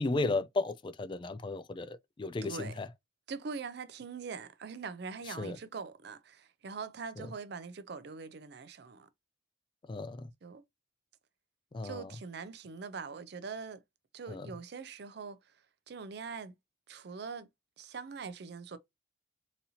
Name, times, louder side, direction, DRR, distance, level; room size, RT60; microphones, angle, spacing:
voice 1, 0.0-2.9 5.3-5.6 7.2-7.3 9.9-10.3 11.7-12.1 14.3-14.5, left 3 dB, 25° left, 0.3 m, -34 dB
voice 2, 2.4-2.7 3.3-9.1 10.4-10.6 11.8-13.8 14.1-15.5 15.9-16.5 16.9-17.5 17.8-18.8, right 5 dB, 60° right, 0.5 m, -43 dB
4.0 x 2.7 x 2.8 m
head